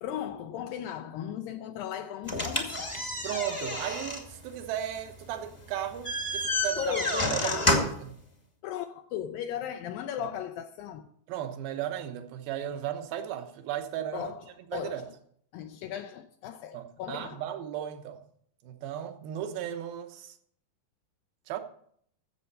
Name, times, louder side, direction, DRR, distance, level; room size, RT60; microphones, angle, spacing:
voice 1, 0.0-2.9 6.8-8.0 8.6-11.1 14.1-14.5 14.7-15.1 15.5-17.4, left 10 dB, 80° left, 2.3 m, -36 dB
sound 1, 2.2-8.1, left 1 dB, 20° left, 0.8 m, -30 dB
voice 2, 3.2-7.0 7.3-8.2 10.2-10.3 11.3-14.3 14.7-15.1 16.7-18.2 18.6-20.3 21.5-21.6, right 11 dB, 80° right, 2.9 m, -35 dB
14.5 x 7.6 x 5.5 m
omnidirectional pair, 4.3 m